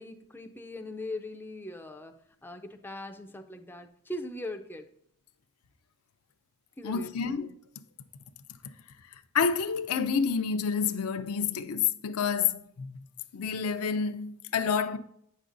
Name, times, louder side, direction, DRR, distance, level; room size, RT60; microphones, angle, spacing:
voice 1, 0.0-4.9 6.8-7.3, left 1 dB, 10° left, 0.4 m, -40 dB
voice 2, 6.8-7.5 9.3-13.0 13.3-15.0, left 6 dB, 80° left, 0.5 m, -28 dB
8.5 x 6.4 x 2.5 m
head